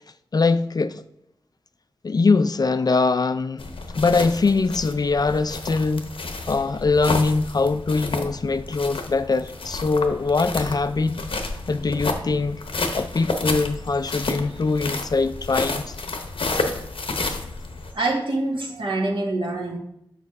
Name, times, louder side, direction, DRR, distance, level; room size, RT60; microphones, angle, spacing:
voice 1, 0.3-1.0 2.0-3.7 3.9-6.1 6.5-11.2 11.5-12.6 12.9-16.0 17.3-17.4, left 3 dB, 45° left, 0.4 m, -22 dB
sound 1, 3.6-17.9, left 3 dB, 75° left, 0.8 m, -30 dB
voice 2, 17.9-19.8, right 2 dB, 65° right, 1.4 m, -25 dB
6.1 x 4.6 x 4.8 m
wide cardioid pair, 75°, 9 cm